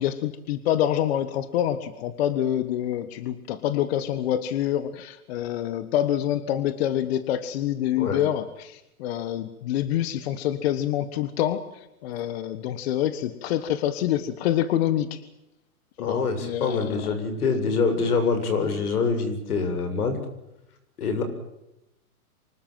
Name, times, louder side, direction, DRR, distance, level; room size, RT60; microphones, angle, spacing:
voice 1, 0.0-15.2 16.0-17.3, left 11 dB, 45° left, 12 dB, 1.5 m, -26 dB
voice 2, 16.0-20.2 21.0-21.2, left 4 dB, 80° left, 8 dB, 7.7 m, -25 dB
25.5 x 20.5 x 7.6 m, 0.89 s
hypercardioid pair, 155°, 44 cm